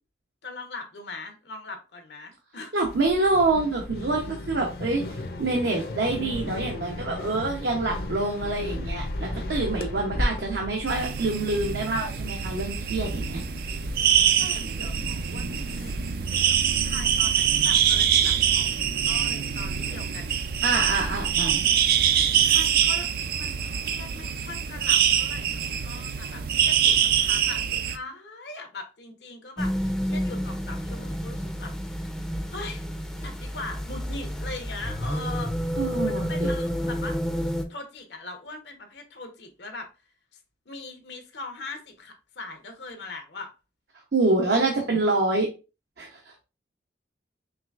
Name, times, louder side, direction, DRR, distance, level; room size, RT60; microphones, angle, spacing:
voice 1, 0.4-2.7 14.4-16.0 16.3-20.4 22.5-23.1 23.4-31.7 32.5-32.9 33.2-37.2 37.5-39.9 40.7-43.5 44.6-44.9, left 3 dB, 80° left, 0.9 m, -41 dB
voice 2, 2.7-5.0 5.4-13.4 20.6-21.6 35.8-36.5 44.1-45.5 46.0-46.3, right 2 dB, 75° right, 0.8 m, -26 dB
sound 1, 2.8-16.5, left 1 dB, 55° left, 0.7 m, -35 dB
sound 2, 10.9-28.0, right 8 dB, 55° right, 0.3 m, -24 dB
sound 3, 29.6-37.6, equal, 5° left, 0.5 m, -30 dB
4.8 x 3.2 x 2.4 m
head